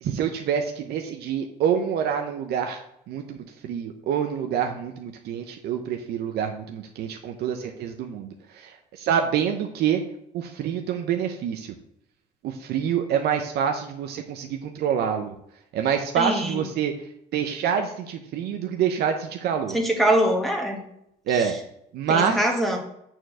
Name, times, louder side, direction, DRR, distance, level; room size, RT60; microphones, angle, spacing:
voice 1, 0.0-3.4 3.6-10.0 10.3-11.7 12.4-15.3 15.7-16.9 17.3-19.8 21.3-21.6 21.9-22.5, right 8 dB, 70° right, 5 dB, 0.8 m, -26 dB
voice 2, 16.2-16.6 19.7-20.8 22.1-22.8, right 1 dB, ahead, 0 dB, 1.4 m, -23 dB
7.0 x 4.5 x 6.3 m, 0.76 s
cardioid pair, 110°, 17 cm